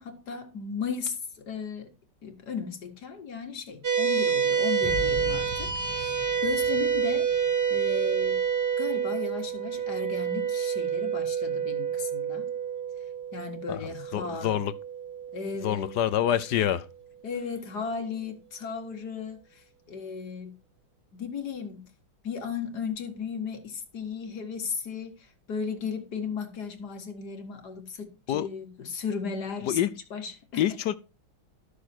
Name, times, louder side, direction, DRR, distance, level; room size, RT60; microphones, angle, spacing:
voice 1, 0.0-1.9 2.2-7.3 7.7-8.4 8.8-12.5 13.3-14.6 15.3-16.0 17.2-20.6 21.1-21.9 22.2-30.8, left 6 dB, 50° left, 2.1 m, -36 dB
sound 1, 3.8-16.5, right 7 dB, 35° right, 1.2 m, -28 dB
sound 2, 4.8-8.0 8.3-8.5, left 1 dB, 5° left, 2.0 m, -39 dB
voice 2, 14.1-14.7 15.6-16.9 28.3-28.5 29.7-29.9 30.6-31.0, left 11 dB, 70° left, 1.0 m, -26 dB
12.5 x 6.6 x 4.3 m
omnidirectional pair, 2.3 m